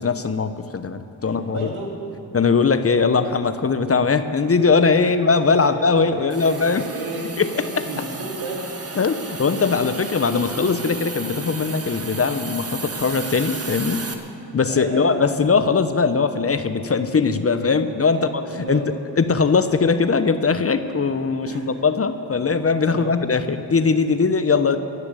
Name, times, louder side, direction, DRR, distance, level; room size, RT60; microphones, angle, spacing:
voice 1, 0.0-1.7 2.3-6.8 7.4-7.6 9.0-14.0 14.5-18.4 18.7-18.8 19.2-24.8, left 4 dB, 30° left, 10 dB, 0.9 m, -20 dB
voice 2, 1.3-1.9 5.0-5.1 5.4-7.2 7.5-7.6 7.9-8.6 14.7-15.3 18.1-19.0 21.4-21.6 22.8-23.2 24.5-24.6, right 3 dB, 85° right, -2 dB, 3.2 m, -33 dB
Hiss, 6.3-14.1, right 4 dB, 30° right, 1.6 m, -33 dB
19.5 x 6.9 x 8.4 m, 2.6 s
supercardioid pair, 60°, 46 cm